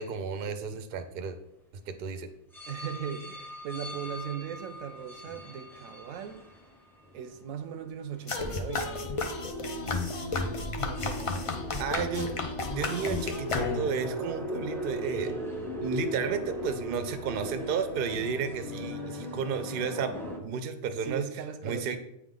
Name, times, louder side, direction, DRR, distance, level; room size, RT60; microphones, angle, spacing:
voice 1, 0.0-1.4 1.9-2.3 11.8-12.3 12.7-15.3 15.8-21.2 21.6-22.0, right 6 dB, 55° right, 8 dB, 0.6 m, -32 dB
sound 1, 2.5-7.8 8.4-8.5 8.9-20.4, left 1 dB, ahead, 0.6 m, -39 dB
voice 2, 2.7-6.4 7.1-9.2 10.8-11.5 21.0-22.0, right 8 dB, 80° right, 8 dB, 1.0 m, -39 dB
sound 2, 8.3-14.1, left 3 dB, 60° left, 0.3 m, -33 dB
8.4 x 3.7 x 3.7 m, 0.82 s
omnidirectional pair, 1.4 m